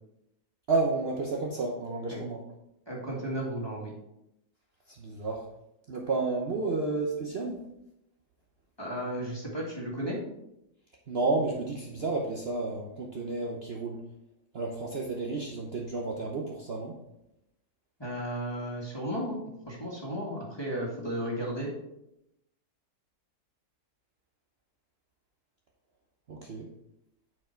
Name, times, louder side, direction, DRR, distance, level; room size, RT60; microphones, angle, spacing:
voice 1, 0.7-2.4 4.9-5.5 5.9-7.6 11.1-14.0 14.5-16.9 26.3-26.7, right 3 dB, 45° right, -1 dB, 1.0 m, -31 dB
voice 2, 2.9-3.9 8.8-10.2 18.0-19.4 19.7-21.7, equal, 15° left, -3 dB, 1.9 m, -34 dB
8.5 x 4.7 x 4.5 m, 0.84 s
omnidirectional pair, 1.6 m